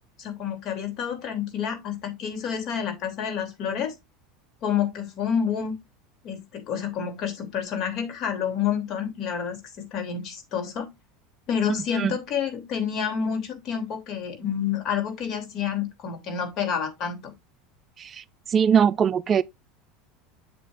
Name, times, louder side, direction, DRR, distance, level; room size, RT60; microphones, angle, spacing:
voice 1, 0.2-3.9 4.6-5.7 6.2-10.9 11.5-17.3, left 8 dB, 50° left, 3.0 m, -29 dB
voice 2, 18.0-19.4, right 7 dB, 35° right, 0.3 m, -22 dB
7.5 x 7.5 x 2.6 m
supercardioid pair, 100°, 0 cm